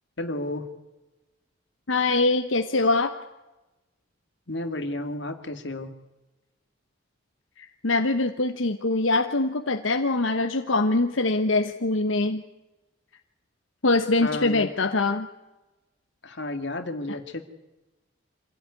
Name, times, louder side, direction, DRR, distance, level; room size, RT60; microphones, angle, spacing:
voice 1, 0.2-0.7 4.5-5.9 14.2-14.7 16.2-17.4, left 1 dB, 60° left, 6 dB, 2.4 m, -32 dB
voice 2, 1.9-3.1 7.6-12.4 13.8-15.3, left 2 dB, 85° left, 7 dB, 1.1 m, -23 dB
26.0 x 16.5 x 9.7 m, 1.1 s
head